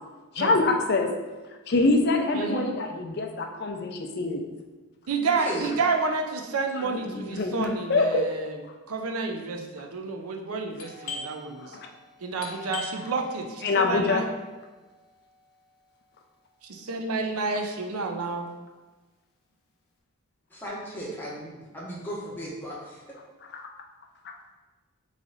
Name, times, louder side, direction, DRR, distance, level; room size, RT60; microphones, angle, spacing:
voice 1, 0.3-1.1 1.7-4.4 6.7-8.3 11.6-11.9 13.6-14.3 23.5-23.6 24.2-24.3, left 3 dB, 45° left, 3 dB, 0.4 m, -25 dB
voice 2, 2.3-2.7 5.1-8.6 8.9-11.8 12.2-14.2 16.6-18.5, right 4 dB, 85° right, 3 dB, 0.5 m, -30 dB
voice 3, 5.4-5.7 20.5-23.0, equal, 10° left, -6 dB, 0.9 m, -35 dB
Doorbell, 10.8-16.2, left 3 dB, 80° left, 0.8 m, -43 dB
3.8 x 3.2 x 3.9 m, 1.2 s
head